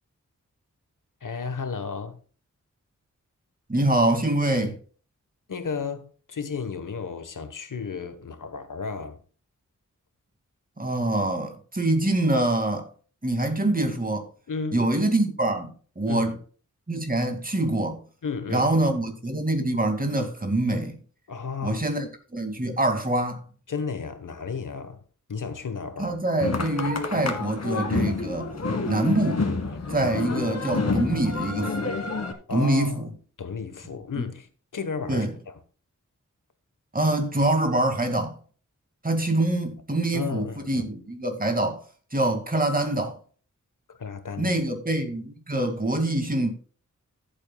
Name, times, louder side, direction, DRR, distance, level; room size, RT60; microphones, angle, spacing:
voice 1, 1.2-2.2 4.6-4.7 5.5-9.2 14.5-14.9 16.0-16.4 18.2-18.8 21.3-21.9 23.7-25.0 25.3-26.2 30.0-30.5 32.5-33.0 33.4-34.5 34.7-35.6 40.1-40.8 43.9-44.5, left 5 dB, 85° left, 1.3 m, -33 dB
voice 2, 3.7-4.8 10.8-12.9 13.2-14.2 14.7-16.3 16.9-18.0 18.5-21.0 21.6-23.4 26.0-28.5 28.8-29.4 29.9-31.9 32.5-33.1 34.2-34.3 35.1-35.3 36.9-38.4 39.0-41.8 42.1-43.2 44.4-46.5, right 1 dB, 30° right, 2.3 m, -25 dB
sound 1, 26.4-32.3, left 3 dB, 55° left, 1.8 m, -28 dB
14.5 x 8.0 x 2.3 m
wide cardioid pair, 65°, 31 cm